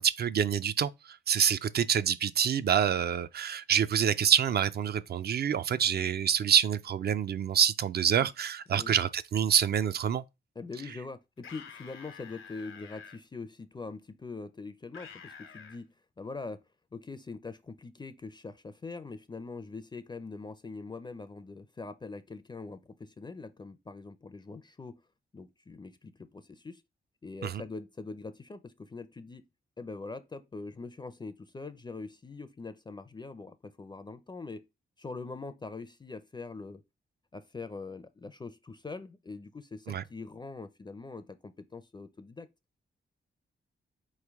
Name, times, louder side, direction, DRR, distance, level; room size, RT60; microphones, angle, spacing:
voice 1, 0.0-10.2 27.4-27.6 39.9-40.0, right 8 dB, 55° right, 0.4 m, -27 dB
voice 2, 10.6-16.6 16.9-25.0 25.3-26.8 27.2-29.4 29.8-34.6 35.0-36.8 37.3-42.5, left 3 dB, 20° left, 0.4 m, -43 dB
sound 1, 11.4-13.2 14.9-15.8, left 6 dB, 80° left, 0.9 m, -48 dB
4.3 x 3.2 x 3.4 m
cardioid pair, 95°, 20 cm